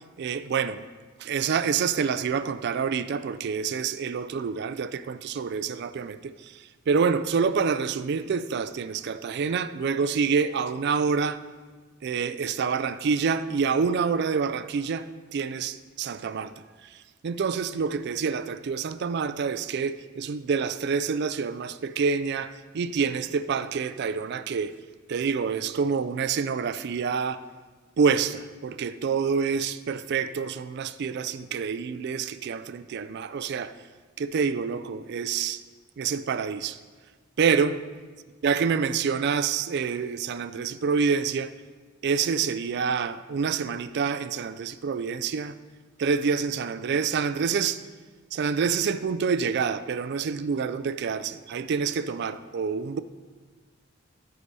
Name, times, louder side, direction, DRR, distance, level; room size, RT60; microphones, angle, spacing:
voice 1, 0.2-0.8 1.2-11.4 12.0-16.5 16.8-17.0 17.2-24.7 25.1-27.4 28.0-33.7 34.2-35.6 36.0-36.8 37.4-37.8 38.4-41.5 42.0-45.5 46.0-47.8 48.3-53.0, right 5 dB, 55° right, 0.4 m, -27 dB
13.0 x 5.0 x 4.1 m
head